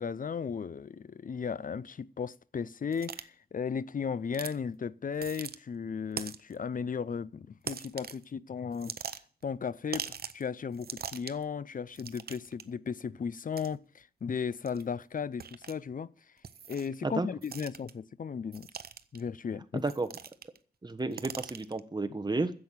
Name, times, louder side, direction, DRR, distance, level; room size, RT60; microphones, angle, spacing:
voice 1, 0.0-9.0 9.4-16.1 16.7-18.7 19.1-19.8, left 6 dB, 55° left, 0.5 m, -35 dB
sound 1, 2.9-3.2 4.3-4.6 5.1-5.6 6.2-6.5 7.6-8.2 8.7-9.4 9.9-10.4 10.7-11.4 11.9-12.6 13.5-13.7 14.7-14.8 15.4-15.7 16.4-16.9 17.4-17.9 18.5-19.2 19.8-20.6 20.9-21.8, right 7 dB, 65° right, 0.7 m, -41 dB
voice 2, 19.7-20.1 20.8-22.5, right 3 dB, 25° right, 1.2 m, -32 dB
10.5 x 7.7 x 8.2 m
wide cardioid pair, 75°, 17 cm